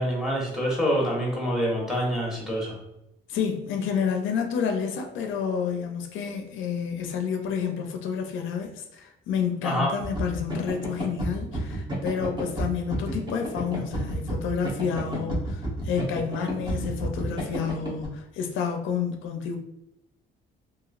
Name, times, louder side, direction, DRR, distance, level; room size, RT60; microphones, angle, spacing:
voice 1, 0.0-2.8 9.6-9.9, equal, ahead, -4 dB, 1.2 m, -26 dB
voice 2, 3.3-19.6, left 7 dB, 80° left, 4 dB, 0.4 m, -29 dB
sound 1, 10.0-18.1, right 1 dB, 25° right, 0.9 m, -31 dB
2.9 x 2.6 x 2.4 m, 0.87 s
cardioid pair, 90°, 20 cm